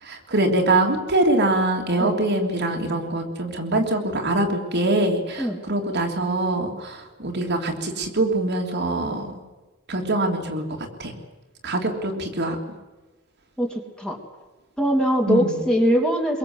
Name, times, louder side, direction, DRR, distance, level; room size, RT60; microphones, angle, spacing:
voice 1, 0.0-9.4 9.9-10.6 11.0-11.1 11.6-12.6 15.3-15.6, right 2 dB, 55° right, 1 dB, 3.2 m, -23 dB
voice 2, 13.6-14.2 14.8-16.4, equal, 5° left, 1 dB, 3.3 m, -22 dB
24.5 x 23.0 x 8.1 m, 1.2 s
head